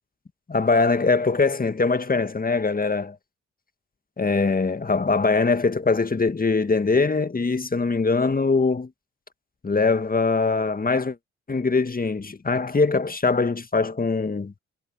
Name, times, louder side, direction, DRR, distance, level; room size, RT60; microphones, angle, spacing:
voice 1, 0.5-3.2 4.2-8.9 9.6-11.2 11.5-14.5, left 4 dB, 25° left, 1.8 m, -22 dB
hypercardioid pair, 45°, 32 cm